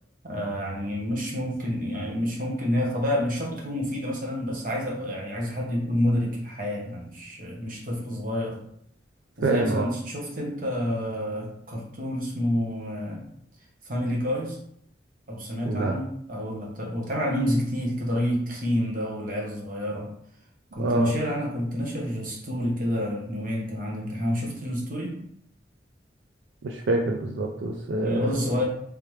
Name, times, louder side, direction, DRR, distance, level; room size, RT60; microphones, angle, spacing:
voice 1, 0.2-8.6 9.4-13.2 13.8-14.6 15.3-20.1 20.7-25.2 28.0-28.6, equal, 50° right, -2 dB, 1.0 m, -28 dB
voice 2, 9.4-9.9 15.7-15.9 20.8-21.1 26.6-28.5, right 2 dB, 85° right, 2 dB, 0.4 m, -26 dB
3.3 x 3.3 x 3.1 m, 0.68 s
head